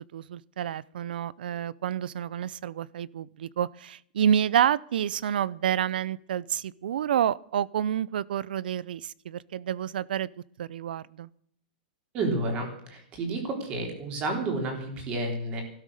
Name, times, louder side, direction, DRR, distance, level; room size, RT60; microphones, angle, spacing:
voice 1, 0.1-10.3 10.6-11.3, right 9 dB, 70° right, 23 dB, 0.6 m, -28 dB
voice 2, 12.1-15.6, right 2 dB, 20° right, 3 dB, 3.7 m, -30 dB
17.5 x 12.5 x 6.5 m, 0.69 s
supercardioid pair, 180°, 5 cm